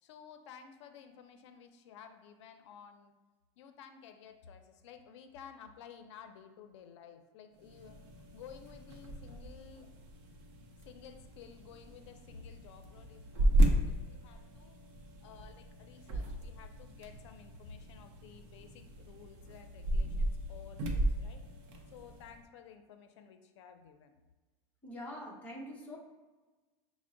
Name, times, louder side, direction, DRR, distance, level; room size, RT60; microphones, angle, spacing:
voice 1, 0.0-3.1 3.6-8.0 8.3-10.0 10.8-14.8 15.2-21.4 21.9-24.2, left 7 dB, 90° left, 7 dB, 0.5 m, -54 dB
sound 1, 7.6-22.4, right 1 dB, 55° right, 0.6 m, -35 dB
voice 2, 24.8-26.0, left 1 dB, 10° left, -4 dB, 0.8 m, -44 dB
5.9 x 2.0 x 3.7 m, 1.2 s
supercardioid pair, 165°, 15 cm